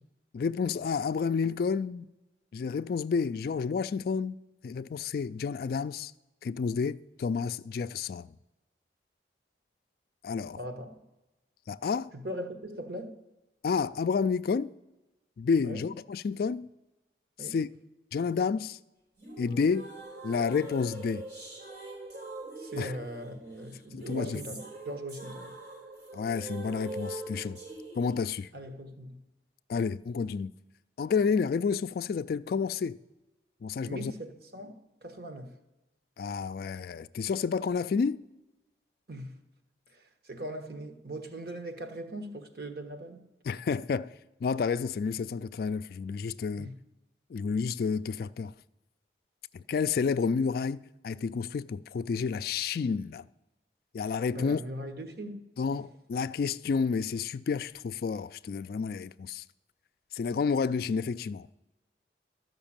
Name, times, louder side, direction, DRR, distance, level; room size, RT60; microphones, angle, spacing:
voice 1, 0.3-2.1 2.5-4.4 4.6-6.1 6.4-8.3 10.2-10.6 11.7-12.1 13.6-14.7 15.4-16.7 17.4-17.7 18.1-18.8 19.4-19.9 20.2-21.2 22.8-22.9 23.9-24.4 26.1-27.6 27.9-28.5 29.7-30.5 31.0-33.0 33.6-34.1 36.2-38.2 43.4-44.1 44.4-46.7 47.3-48.5 49.5-53.2 53.9-54.6 55.6-59.4 60.1-61.5, left 5 dB, 55° left, 0.3 m, -30 dB
voice 2, 10.5-11.0 12.1-13.2 15.6-15.9 17.4-17.6 22.6-25.5 28.5-29.2 33.9-35.5 39.1-39.4 39.9-43.2 46.6-46.8 54.3-55.8, right 1 dB, 60° right, 1.3 m, -40 dB
sound 1, 19.2-28.2, right 2 dB, 80° right, 4.5 m, -43 dB
12.5 x 5.9 x 8.8 m
head